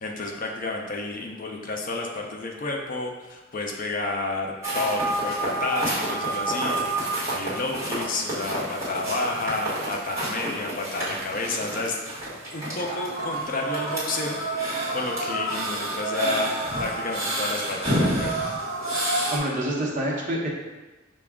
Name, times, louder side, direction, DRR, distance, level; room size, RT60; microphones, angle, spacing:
voice 1, 0.0-6.8 7.3-12.0 12.5-18.3, left 2 dB, 40° left, 1 dB, 0.5 m, -30 dB
sound 1, 4.6-19.4, right 1 dB, 15° right, 1.3 m, -29 dB
voice 2, 19.3-20.5, right 1 dB, 40° right, -3 dB, 0.9 m, -27 dB
5.9 x 2.3 x 3.5 m, 1.2 s
head